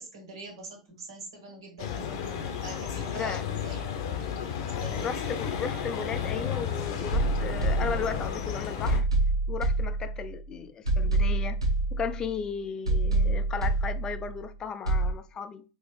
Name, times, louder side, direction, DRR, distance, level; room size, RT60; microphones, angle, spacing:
voice 1, 0.0-2.0 2.6-3.9 4.7-5.2, right 2 dB, 65° right, 2.0 m, -43 dB
sound 1, 1.8-9.0, left 8 dB, 55° left, 0.8 m, -33 dB
voice 2, 5.0-9.1 9.5-11.6 11.9-15.6, left 6 dB, 25° left, 0.5 m, -35 dB
sound 2, 7.1-8.4 8.9-10.4 10.9-12.4 12.9-14.4 14.9-15.1, right 2 dB, 90° right, 1.3 m, -27 dB
3.8 x 2.9 x 3.2 m
figure-of-eight pair, 90°, 3 cm